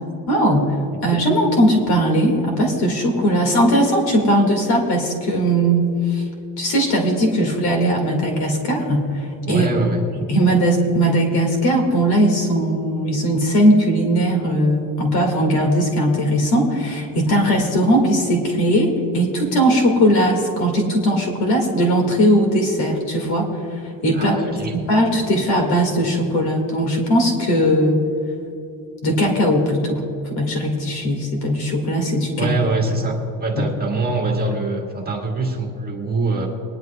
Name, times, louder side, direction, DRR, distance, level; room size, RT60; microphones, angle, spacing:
voice 1, 0.3-6.2 6.6-9.7 10.2-24.4 24.7-28.0 29.0-32.5, equal, 55° left, 2 dB, 2.0 m, -19 dB
voice 2, 9.5-10.0 24.1-24.7 32.4-36.5, right 2 dB, 20° right, -1 dB, 1.7 m, -23 dB
22.0 x 11.0 x 2.3 m, 2.7 s
cardioid pair, 140°, 45 cm